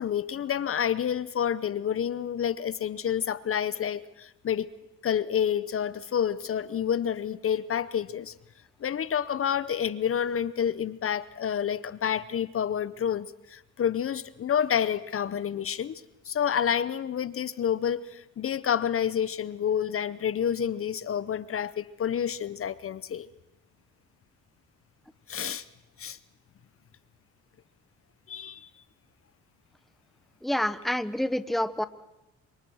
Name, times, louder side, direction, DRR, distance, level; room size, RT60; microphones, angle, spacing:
voice 1, 0.0-4.7 5.0-8.3 8.8-23.3 25.3-25.6 26.0-26.2 28.3-28.7, left 8 dB, 45° left, 17 dB, 0.8 m, -29 dB
voice 2, 30.4-31.9, left 1 dB, ahead, 13 dB, 1.1 m, -28 dB
27.5 x 25.5 x 6.4 m, 0.92 s
cardioid pair, 90°, 30 cm